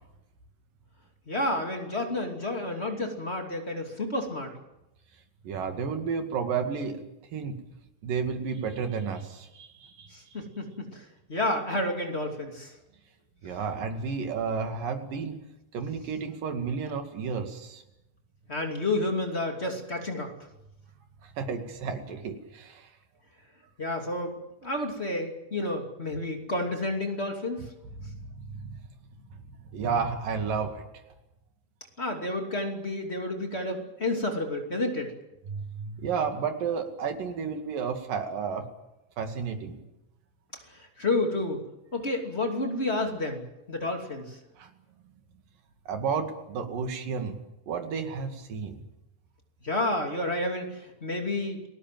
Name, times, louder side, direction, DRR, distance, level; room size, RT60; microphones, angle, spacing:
voice 1, 1.3-4.5 10.1-11.0 11.3-12.7 18.5-20.3 23.8-27.6 32.0-35.1 40.7-41.6 41.9-44.4 49.6-51.6, left 2 dB, 20° left, 3 dB, 2.7 m, -30 dB
voice 2, 5.4-7.0 7.3-7.6 8.0-10.4 13.4-15.4 15.7-17.8 21.2-22.9 28.0-28.7 29.7-30.9 35.5-38.7 39.2-39.8 44.6-44.7 45.9-47.4 47.7-48.8, right 5 dB, 85° right, 6 dB, 3.9 m, -32 dB
29.5 x 19.5 x 7.6 m, 0.94 s
omnidirectional pair, 3.8 m